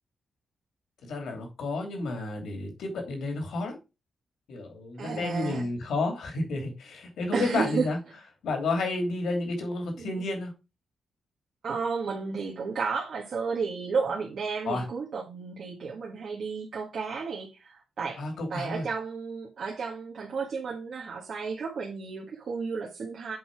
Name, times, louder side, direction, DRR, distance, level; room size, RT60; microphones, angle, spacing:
voice 1, 1.0-3.7 4.5-8.0 8.4-10.5 14.6-14.8 18.2-18.9, left 2 dB, 75° left, 2.8 m, -31 dB
voice 2, 5.0-5.7 7.3-7.9 10.0-10.1 11.6-18.2 18.5-23.4, right 5 dB, 50° right, 1.7 m, -32 dB
8.1 x 4.7 x 4.8 m
wide cardioid pair, 165°, 0 cm